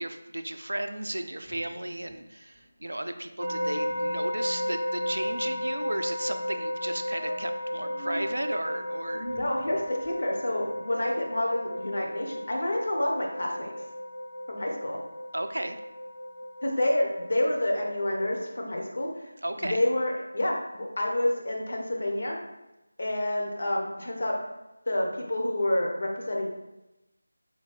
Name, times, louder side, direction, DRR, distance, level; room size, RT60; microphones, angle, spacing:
voice 1, 0.0-9.3 15.3-15.8 19.4-19.8, right 1 dB, 75° right, 8 dB, 0.4 m, -34 dB
sound 1, 1.4-2.3 2.5-2.7 3.0-3.2 3.5-3.6 3.8-4.0 4.6-5.7 6.4-6.5 6.8-6.9 7.1-8.3 9.2-10.2, equal, 5° left, 0.6 m, -46 dB
sound 2, 3.4-18.4, left 1 dB, 90° left, 1.2 m, -34 dB
voice 2, 9.1-13.7 14.5-15.0 16.6-19.3 19.6-22.4 23.0-24.3 24.9-26.5, left 1 dB, 55° left, -1 dB, 0.8 m, -28 dB
4.3 x 2.7 x 3.1 m, 0.97 s
figure-of-eight pair, 165°, 0 cm